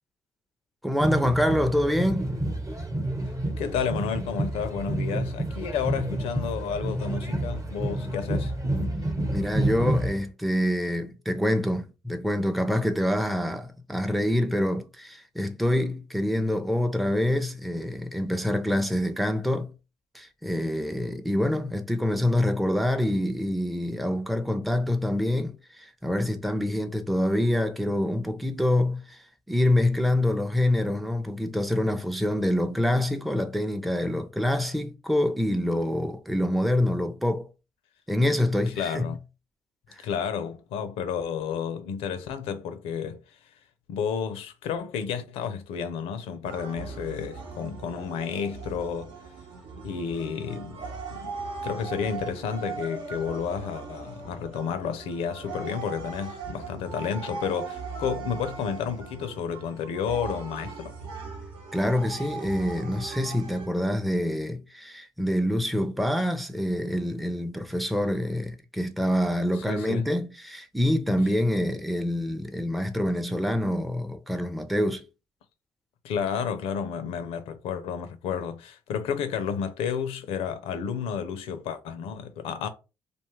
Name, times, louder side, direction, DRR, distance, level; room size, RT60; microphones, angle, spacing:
voice 1, 0.8-2.4 9.3-19.7 20.1-37.5 38.1-39.1 39.9-40.1 61.7-75.0, left 1 dB, ahead, 0.5 m, -26 dB
sound 1, 1.0-10.2, right 1 dB, 35° right, 1.0 m, -29 dB
voice 2, 3.6-8.5 38.8-39.2 40.0-43.4 43.9-49.1 49.8-50.8 51.1-60.9 69.7-70.1 76.0-82.7, left 7 dB, 80° left, 0.5 m, -31 dB
sound 2, 46.4-63.7, right 4 dB, 70° right, 0.9 m, -39 dB
2.5 x 2.3 x 3.1 m
supercardioid pair, 60°, 10 cm